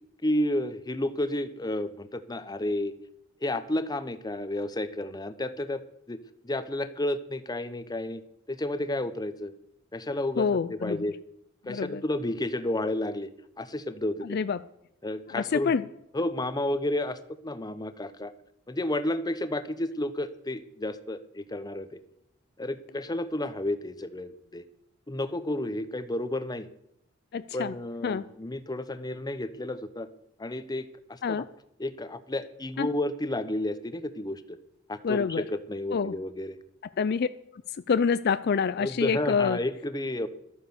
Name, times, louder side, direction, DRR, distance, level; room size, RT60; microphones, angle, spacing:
voice 1, 0.2-2.9 3.4-5.8 6.1-6.2 6.4-8.2 8.5-9.5 9.9-11.2 11.7-13.3 13.6-14.4 15.0-15.7 16.1-17.2 17.4-18.3 18.7-22.0 22.6-24.6 25.1-26.7 27.5-30.1 30.4-31.4 31.8-34.6 34.9-36.6 38.8-40.3, left 1 dB, 20° left, 12 dB, 0.8 m, -31 dB
voice 2, 10.4-11.1 11.7-12.0 14.2-14.6 15.3-15.8 27.3-27.7 28.0-28.2 31.2-31.5 32.8-32.9 35.0-35.4 35.9-36.2 37.0-37.3 37.5-37.6 37.9-39.6, left 6 dB, 50° left, 13 dB, 0.4 m, -27 dB
12.5 x 9.3 x 7.0 m, 0.77 s
head